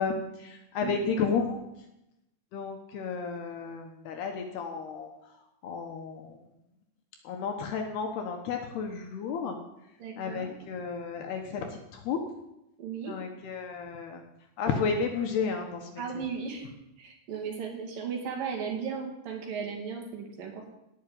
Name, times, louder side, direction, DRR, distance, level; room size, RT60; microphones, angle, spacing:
voice 1, 0.0-1.7 2.5-5.3 5.6-6.4 7.2-9.6 10.2-12.2 13.0-14.2 14.6-16.0, left 5 dB, 70° left, 4 dB, 2.9 m, -32 dB
voice 2, 0.8-1.1 10.0-10.5 12.8-13.2 16.0-16.7 17.0-20.7, right 6 dB, 50° right, 3 dB, 3.8 m, -36 dB
18.0 x 6.4 x 9.6 m, 0.88 s
omnidirectional pair, 5.4 m